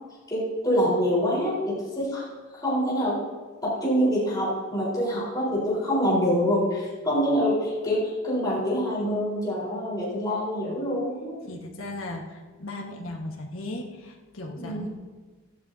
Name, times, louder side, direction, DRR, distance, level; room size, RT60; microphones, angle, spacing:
voice 1, 0.3-2.2 2.6-3.2 3.6-11.5 14.6-14.8, equal, 20° left, -7 dB, 4.3 m, -25 dB
voice 2, 11.5-14.9, left 1 dB, 70° left, 0 dB, 1.5 m, -37 dB
17.0 x 12.5 x 2.8 m, 1.3 s
head